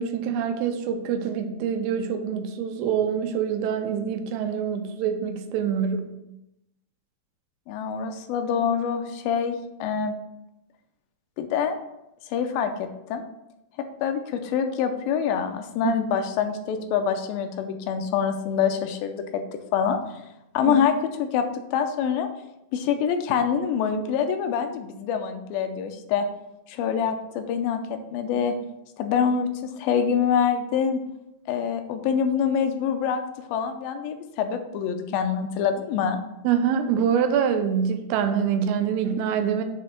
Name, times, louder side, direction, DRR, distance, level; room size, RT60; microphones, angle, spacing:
voice 1, 0.0-6.1 15.8-15.9 20.7-20.8 36.4-39.6, right 7 dB, 85° right, 7 dB, 2.6 m, -25 dB
voice 2, 7.7-10.1 11.4-11.8 12.3-13.2 14.0-19.4 19.7-20.2 20.5-20.9 21.2-21.5 21.7-22.3 22.7-26.3 26.7-27.8 28.1-28.5 29.0-31.0 31.5-36.2, left 7 dB, 80° left, 7 dB, 2.2 m, -25 dB
7.7 x 3.4 x 6.4 m, 0.87 s
omnidirectional pair, 4.5 m